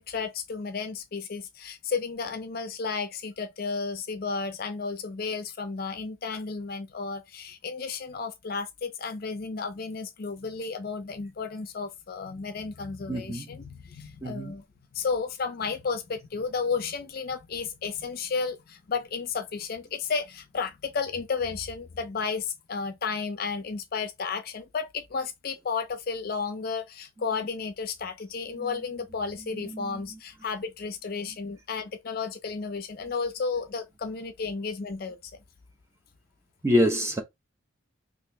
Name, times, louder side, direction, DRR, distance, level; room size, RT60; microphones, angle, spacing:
voice 1, 0.0-14.6 14.9-35.2, left 5 dB, 45° left, 0.5 m, -33 dB
voice 2, 13.1-13.5 14.2-14.5 28.6-28.7 29.5-30.2 36.6-37.2, equal, 15° right, 0.6 m, -27 dB
2.9 x 2.5 x 3.2 m
head